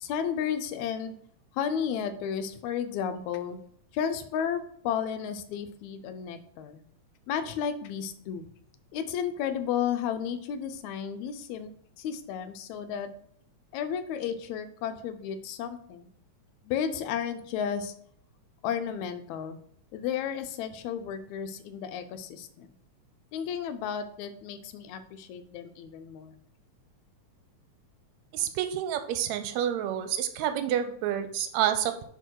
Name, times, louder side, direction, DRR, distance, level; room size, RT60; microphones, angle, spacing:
voice 1, 0.0-1.2 1.5-3.6 3.9-6.8 7.3-8.5 8.9-11.7 12.0-13.1 13.7-16.1 16.7-17.9 18.6-19.6 19.9-22.7 23.3-26.3, left 8 dB, 80° left, 10 dB, 1.9 m, -33 dB
voice 2, 28.3-32.0, right 10 dB, 80° right, 8 dB, 1.9 m, -29 dB
6.9 x 4.3 x 4.6 m, 0.64 s
omnidirectional pair, 3.3 m